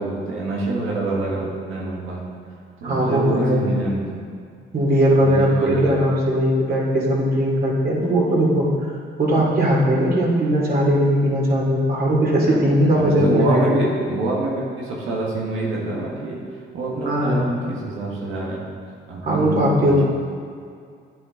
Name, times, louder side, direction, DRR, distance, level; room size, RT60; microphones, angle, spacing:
voice 1, 0.0-2.3 2.8-4.2 5.2-6.0 12.5-12.6 12.9-16.4 16.7-18.7 19.1-20.0, right 2 dB, 90° right, -3 dB, 1.7 m, -26 dB
voice 2, 2.8-3.7 4.7-8.9 9.2-13.8 17.0-17.5 19.2-20.0, equal, 50° right, -4 dB, 2.8 m, -19 dB
10.5 x 8.6 x 3.9 m, 2.2 s
cardioid pair, 90°, 20 cm